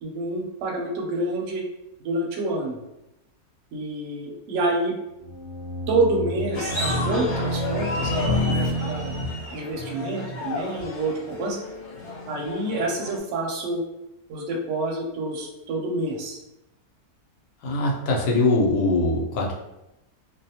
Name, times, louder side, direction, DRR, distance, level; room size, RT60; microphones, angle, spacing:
voice 1, 0.0-1.6 2.0-2.8 3.7-4.9 5.9-8.1 8.5-9.1 9.5-11.6 12.3-13.8 14.3-16.4, right 2 dB, 65° right, 0 dB, 0.8 m, -27 dB
sound 1, 5.2-9.7, left 1 dB, 30° right, 0.3 m, -37 dB
sound 2, 6.5-13.2, left 1 dB, 55° left, 1.0 m, -28 dB
voice 2, 17.6-19.5, left 2 dB, 80° left, -2 dB, 1.2 m, -22 dB
2.6 x 2.1 x 2.7 m, 0.91 s
omnidirectional pair, 1.6 m